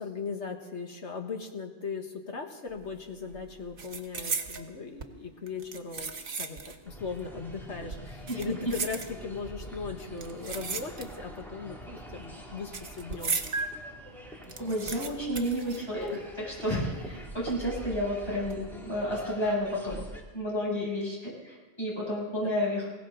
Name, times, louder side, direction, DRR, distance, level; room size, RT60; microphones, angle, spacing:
voice 1, 0.0-13.4 16.1-16.2 20.6-20.9 22.4-22.6, left 5 dB, 80° left, 4 dB, 1.9 m, -38 dB
sound 1, 2.7-3.0 3.3-4.7 5.5-6.9 7.2-7.3 8.1-9.5 10.2-11.4 11.6-13.6 14.0-14.1 14.3-16.4 16.7-16.8 17.5-17.9 18.3-18.5, right 5 dB, 55° right, 1.2 m, -37 dB
sound 2, 5.0-13.2 13.5-13.7, right 3 dB, 85° right, 1.4 m, -44 dB
sound 3, 6.8-20.2, equal, ahead, 2.4 m, -45 dB
voice 2, 14.6-16.1 16.4-20.1 20.3-22.9, equal, 25° left, -6 dB, 7.7 m, -31 dB
21.0 x 17.5 x 3.9 m, 1.2 s
omnidirectional pair, 1.1 m